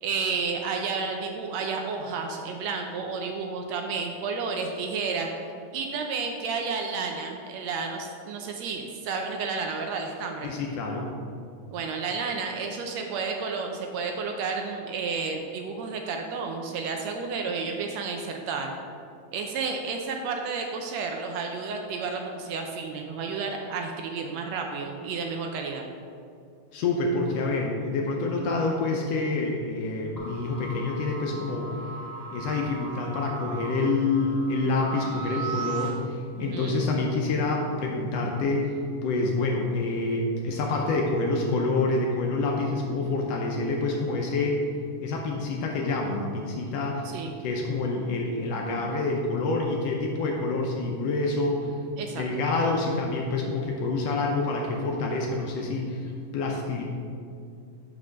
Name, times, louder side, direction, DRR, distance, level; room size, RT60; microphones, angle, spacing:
voice 1, 0.0-5.3 5.7-10.5 11.7-18.7 19.3-25.9 36.4-36.8 47.1-47.3 52.0-52.2, right 4 dB, 75° right, 3 dB, 1.6 m, -31 dB
voice 2, 10.4-11.1 26.7-31.7 32.3-44.6 45.0-51.7 52.1-56.8, left 3 dB, 75° left, 0 dB, 1.6 m, -27 dB
sound 1, 30.2-35.9, right 5 dB, 15° left, 0.9 m, -37 dB
5.8 x 4.8 x 6.2 m, 2.3 s
omnidirectional pair, 3.3 m